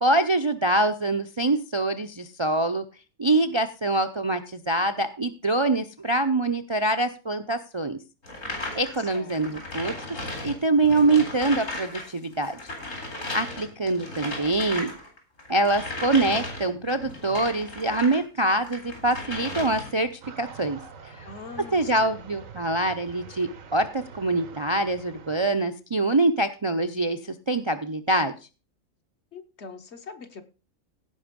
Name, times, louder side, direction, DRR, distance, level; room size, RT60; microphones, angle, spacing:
voice 1, 0.0-2.8 3.2-8.0 8.7-9.9 10.4-12.7 13.3-14.9 15.5-21.3 21.7-27.2 27.5-28.3, right 2 dB, 30° right, 0.5 m, -24 dB
sound 1, 8.2-12.1 12.3-18.2 18.6-20.1, left 2 dB, 70° left, 4.1 m, -36 dB
voice 2, 9.0-9.7 21.2-22.3 29.3-30.4, left 4 dB, 55° left, 1.4 m, -43 dB
sound 2, 20.2-25.5, right 6 dB, 80° right, 1.5 m, -45 dB
16.5 x 5.5 x 5.2 m
omnidirectional pair, 1.4 m